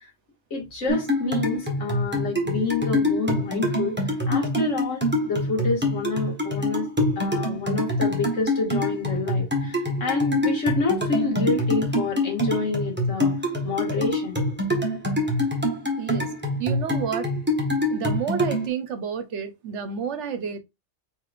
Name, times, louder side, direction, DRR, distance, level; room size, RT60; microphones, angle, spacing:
voice 1, 0.5-4.0 4.3-5.0 5.3-6.9 7.2-13.3 13.6-14.4, left 3 dB, 80° left, 2.3 m, -28 dB
sound 1, 0.9-18.7, left 1 dB, 10° right, 1.4 m, -25 dB
voice 2, 16.0-16.3 16.6-17.3 17.9-20.6, right 7 dB, 70° right, 1.1 m, -30 dB
4.6 x 4.5 x 2.5 m
omnidirectional pair, 1.3 m